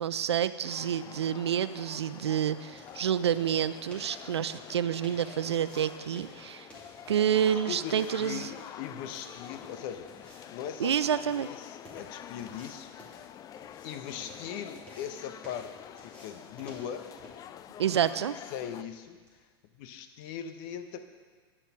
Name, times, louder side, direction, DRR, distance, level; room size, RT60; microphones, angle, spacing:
voice 1, 0.0-6.7 7.1-8.5 10.8-11.5 17.8-18.4, right 9 dB, 85° right, 15 dB, 0.4 m, -28 dB
sound 1, 0.6-18.8, left 10 dB, 25° left, 0.4 m, -47 dB
sound 2, 2.2-19.4, equal, 10° left, 3.2 m, -56 dB
voice 2, 7.5-10.9 11.2-12.9 13.8-17.1 18.5-19.2 19.8-21.0, left 8 dB, 55° left, 8 dB, 0.9 m, -40 dB
10.0 x 6.6 x 5.9 m, 1.5 s
hypercardioid pair, 100°, 14 cm